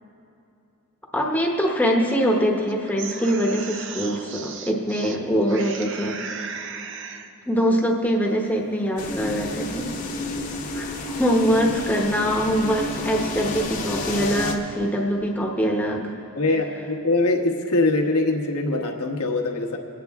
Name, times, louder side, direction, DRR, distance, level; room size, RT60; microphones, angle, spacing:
voice 1, 1.1-6.2 7.5-9.9 10.7-10.9 11.2-16.0, equal, 5° left, -1 dB, 0.9 m, -23 dB
sound 1, 2.7-5.2 5.5-7.3, right 6 dB, 55° right, 0.6 m, -36 dB
sound 2, 9.0-14.5, left 2 dB, 35° left, 0.9 m, -30 dB
voice 2, 16.4-19.8, left 2 dB, 80° left, 2 dB, 1.2 m, -23 dB
24.5 x 9.1 x 3.5 m, 2.7 s
head